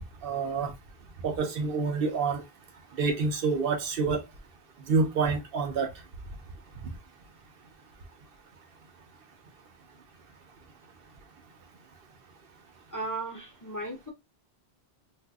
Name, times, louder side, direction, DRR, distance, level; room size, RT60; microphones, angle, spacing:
voice 1, 0.2-0.7 1.2-2.4 3.0-4.2 4.9-5.9, right 4 dB, 65° right, 0.9 m, -27 dB
voice 2, 12.9-14.1, right 2 dB, 20° left, 0.6 m, -35 dB
2.6 x 2.4 x 3.4 m
omnidirectional pair, 1.0 m